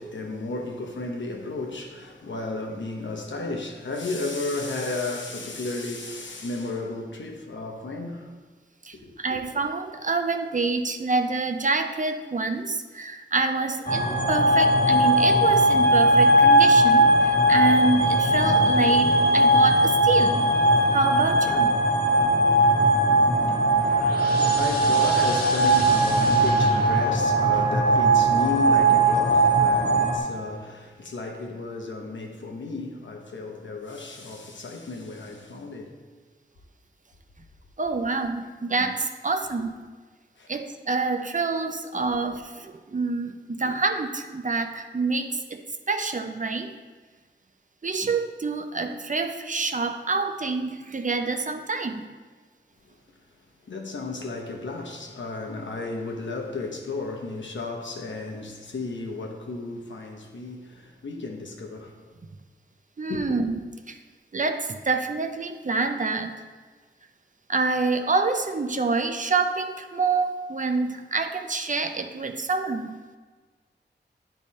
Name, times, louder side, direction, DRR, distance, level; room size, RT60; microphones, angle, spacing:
voice 1, 0.0-8.3 8.9-9.4 23.5-36.0 40.4-40.5 53.7-62.0 63.1-63.4, left 3 dB, 80° left, 1.0 m, -33 dB
voice 2, 8.8-20.5 20.9-21.8 37.8-39.8 40.5-45.6 45.9-46.7 47.8-52.0 63.0-63.6 63.9-64.0 64.3-66.3 67.5-73.0, right 3 dB, 45° right, 0.6 m, -27 dB
sound 1, 13.9-30.2, right 1 dB, 50° left, 1.8 m, -19 dB
10.0 x 3.4 x 4.2 m
wide cardioid pair, 55°, 19 cm